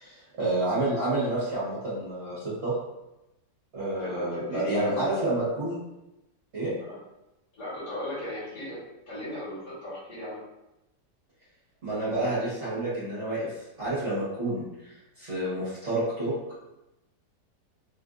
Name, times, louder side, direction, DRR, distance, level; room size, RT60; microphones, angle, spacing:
voice 1, 0.0-2.7 3.7-5.8 6.5-6.7 11.8-13.5 13.8-14.9 15.2-16.3, right 2 dB, 45° right, -11 dB, 1.2 m, -29 dB
voice 2, 4.0-5.4 6.9-7.0 7.6-8.8 9.1-10.4, left 1 dB, 75° left, -11 dB, 2.1 m, -36 dB
3.7 x 2.5 x 2.4 m, 0.94 s
omnidirectional pair, 1.8 m